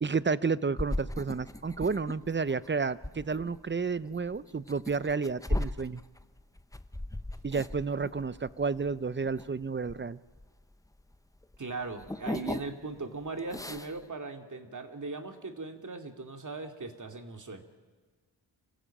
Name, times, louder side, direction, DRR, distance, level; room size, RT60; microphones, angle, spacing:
voice 1, 0.0-6.0 7.4-10.2, right 4 dB, 25° right, 17 dB, 0.7 m, -31 dB
sound 1, 0.8-11.1 11.4-13.0 13.3-14.0, left 1 dB, 10° left, 0.9 m, -37 dB
voice 2, 11.6-17.6, right 3 dB, 45° right, 5 dB, 2.4 m, -39 dB
25.5 x 15.5 x 8.9 m, 1.5 s
cardioid pair, 50°, 43 cm